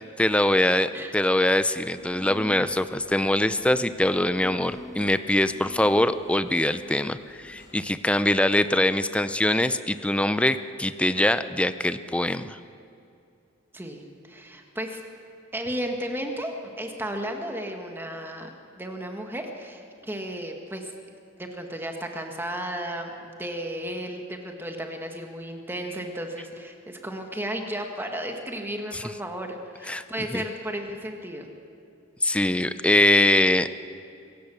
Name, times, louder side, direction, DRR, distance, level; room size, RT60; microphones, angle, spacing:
voice 1, 0.2-12.6 28.9-29.0 29.9-30.0 30.3-30.4 32.2-33.7, left 1 dB, 5° left, 12 dB, 0.5 m, -23 dB
sound 1, 2.0-7.7, left 1 dB, 60° left, 3.6 m, -46 dB
voice 2, 13.7-15.0 15.5-18.5 18.8-20.9 21.4-31.5, right 1 dB, 10° right, 3 dB, 1.6 m, -34 dB
25.0 x 15.5 x 7.0 m, 2.5 s
head